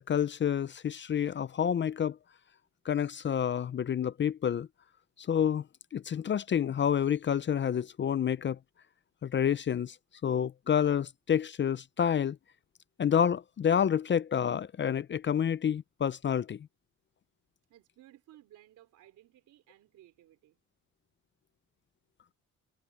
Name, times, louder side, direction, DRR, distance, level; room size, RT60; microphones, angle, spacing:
voice 1, 0.0-2.2 2.8-4.7 5.2-5.6 5.9-8.6 9.2-10.0 10.2-12.4 13.0-16.7, left 8 dB, 40° left, 0.6 m, -28 dB
voice 2, 17.7-20.6, right 13 dB, 80° right, 3.6 m, -58 dB
cardioid pair, 90°, 30 cm